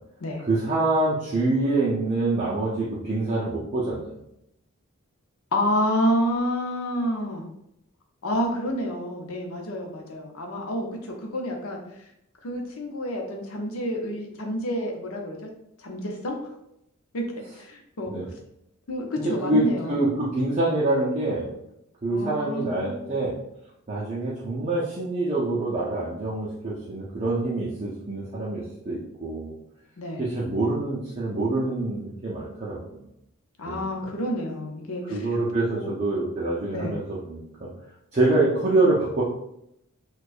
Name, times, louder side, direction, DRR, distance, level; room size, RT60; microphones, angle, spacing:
voice 1, 0.4-4.2 18.1-18.3 19.2-19.6 19.9-21.5 22.0-23.4 23.9-29.5 30.2-33.1 33.7-33.8 35.1-37.7 38.1-39.2, right 2 dB, 30° right, -7 dB, 0.6 m, -26 dB
voice 2, 5.5-7.4 8.2-11.8 12.4-15.5 15.8-16.4 17.1-17.2 17.6-18.1 18.9-20.1 22.1-23.3 30.0-30.3 33.6-35.3 35.7-35.9 36.7-37.0 38.3-38.4, equal, 75° left, 2 dB, 0.7 m, -29 dB
4.5 x 2.3 x 2.5 m, 0.79 s
head